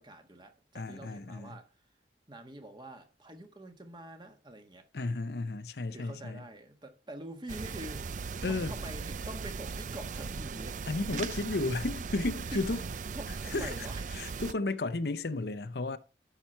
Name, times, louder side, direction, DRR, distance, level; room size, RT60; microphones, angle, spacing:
voice 1, 0.0-1.7 2.3-4.9 5.9-8.2 8.4-10.8 11.1-11.2 12.5-14.0, right 1 dB, 25° right, 1.5 m, -46 dB
voice 2, 0.7-1.6 4.9-6.4 8.4-8.7 10.9-12.8 13.4-13.9 14.1-16.0, left 2 dB, 60° left, 0.7 m, -33 dB
sound 1, 7.5-14.5, right 5 dB, 45° right, 0.4 m, -38 dB
12.0 x 5.8 x 4.5 m
head